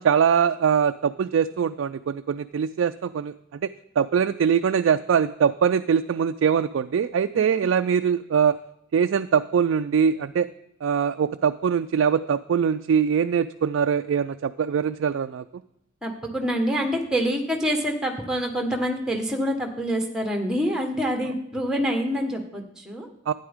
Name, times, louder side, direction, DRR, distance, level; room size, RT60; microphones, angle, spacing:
voice 1, 0.0-8.6 8.9-10.5 10.8-15.4 23.3-23.4, right 7 dB, 75° right, 9 dB, 0.3 m, -22 dB
voice 2, 16.0-23.1, equal, 5° right, 3 dB, 1.3 m, -26 dB
12.0 x 9.6 x 3.6 m, 0.79 s
head